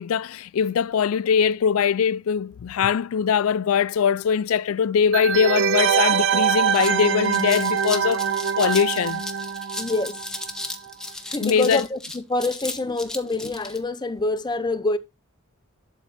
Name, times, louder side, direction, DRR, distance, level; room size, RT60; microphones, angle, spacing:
voice 1, 0.0-8.3 8.6-9.2 11.4-11.8, left 7 dB, 85° left, 0.4 m, -22 dB
sound 1, 5.1-10.6 10.9-11.0, right 8 dB, 60° right, 0.7 m, -23 dB
sound 2, 6.0-6.1 6.4-13.8, left 1 dB, 5° left, 1.1 m, -35 dB
voice 2, 9.8-10.2 11.3-15.0, left 2 dB, 20° left, 0.7 m, -26 dB
12.0 x 4.5 x 4.0 m
head